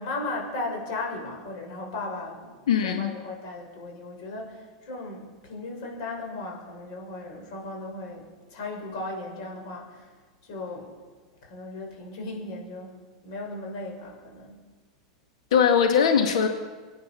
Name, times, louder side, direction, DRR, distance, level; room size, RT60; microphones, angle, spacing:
voice 1, 0.0-2.6 2.8-10.1 10.4-11.0 11.4-14.7, left 2 dB, 60° left, 0 dB, 6.5 m, -36 dB
voice 2, 2.7-3.1 15.5-16.5, left 7 dB, 80° left, 4 dB, 1.8 m, -20 dB
25.0 x 9.5 x 6.0 m, 1.4 s
hypercardioid pair, 115°, 3 cm